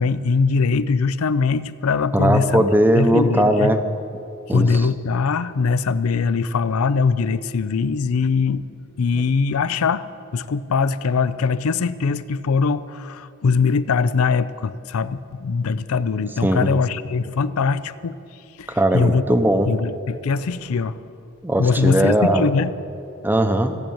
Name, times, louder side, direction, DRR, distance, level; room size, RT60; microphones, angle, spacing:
voice 1, 0.0-2.6 2.9-3.7 4.5-8.7 9.0-10.0 10.3-19.2 19.6-21.1 21.6-22.7, left 5 dB, 70° left, 16 dB, 0.5 m, -21 dB
voice 2, 2.1-3.8 4.5-4.8 9.1-9.3 16.4-16.7 18.7-19.7 21.4-22.4 23.2-23.8, right 1 dB, 10° right, 7 dB, 0.7 m, -19 dB
15.5 x 7.7 x 8.7 m, 2.7 s
head